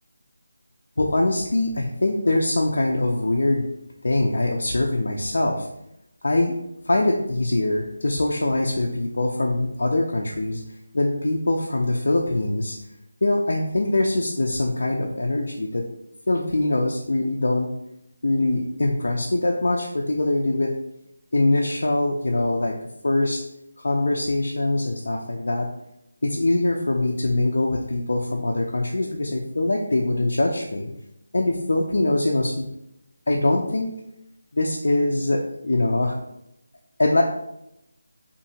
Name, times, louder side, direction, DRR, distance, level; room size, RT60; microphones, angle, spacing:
voice 1, 1.0-3.7 4.0-5.7 6.2-6.5 6.9-10.6 10.9-12.8 13.2-15.8 16.3-17.7 18.2-20.7 21.3-22.8 23.0-23.4 23.8-25.7 26.2-30.9 31.3-32.7 33.3-33.9 34.5-36.2 37.0-37.2, left 2 dB, 70° left, -1 dB, 0.3 m, -23 dB
2.8 x 2.5 x 2.7 m, 0.83 s
figure-of-eight pair, 175°, 0 cm